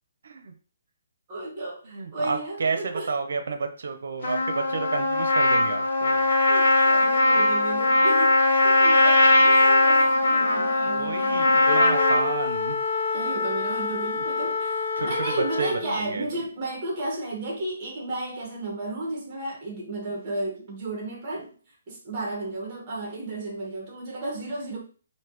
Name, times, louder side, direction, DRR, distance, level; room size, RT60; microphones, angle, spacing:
voice 1, 1.3-3.1 6.4-11.7 13.1-21.5 21.9-24.8, right 2 dB, 15° right, -2 dB, 1.3 m, -33 dB
voice 2, 1.8-6.3 10.8-12.8 15.0-16.3, right 4 dB, 60° right, 7 dB, 0.8 m, -31 dB
Trumpet, 4.2-12.3, left 2 dB, 55° left, 0.9 m, -20 dB
Wind instrument woodwind instrument, 11.6-16.0, left 4 dB, 35° left, 0.5 m, -28 dB
5.6 x 2.8 x 3.1 m, 0.39 s
hypercardioid pair, 180°, 0 cm